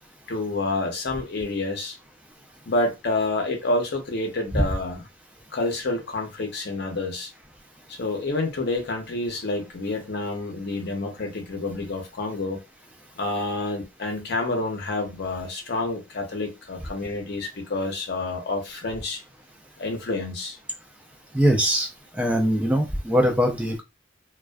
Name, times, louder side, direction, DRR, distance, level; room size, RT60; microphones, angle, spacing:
voice 1, 0.3-1.9 2.7-5.1 5.5-7.3 8.0-12.6 13.2-19.2 19.8-20.6, left 2 dB, 55° left, 3 dB, 0.6 m, -28 dB
voice 2, 21.3-21.9 22.2-23.8, equal, 5° right, 3 dB, 0.4 m, -21 dB
2.4 x 2.2 x 2.2 m, 0.25 s
head